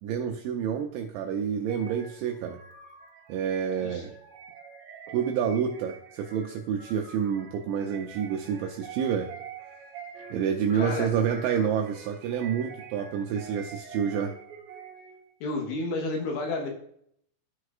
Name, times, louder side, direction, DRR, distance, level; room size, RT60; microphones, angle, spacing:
voice 1, 0.0-2.6 3.3-4.1 5.1-9.3 10.3-14.4, right 7 dB, 90° right, 3 dB, 2.6 m, -28 dB
sound 1, 1.7-15.3, right 5 dB, 65° right, 2.6 m, -46 dB
voice 2, 10.7-11.1 15.4-16.7, left 2 dB, 75° left, 1 dB, 3.4 m, -31 dB
13.5 x 4.8 x 2.4 m, 0.69 s
omnidirectional pair, 5.8 m